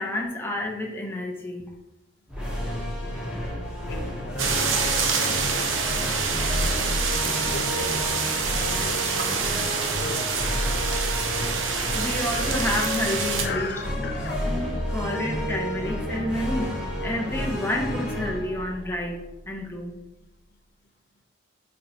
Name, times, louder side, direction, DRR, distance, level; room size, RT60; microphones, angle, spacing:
voice 1, 0.0-1.7 11.9-13.7 14.5-16.8 17.0-20.0, left 1 dB, 10° left, 0 dB, 0.8 m, -29 dB
sound 1, 2.3-19.7, equal, 5° right, 1.4 m, -30 dB
voice 2, 3.9-6.0 7.1-8.1 8.6-9.4 9.9-10.7 13.4-14.5, left 4 dB, 55° left, 5 dB, 0.6 m, -38 dB
sound 2, 4.4-13.5, right 5 dB, 85° right, 0.8 m, -26 dB
8.2 x 4.4 x 2.8 m, 0.93 s
head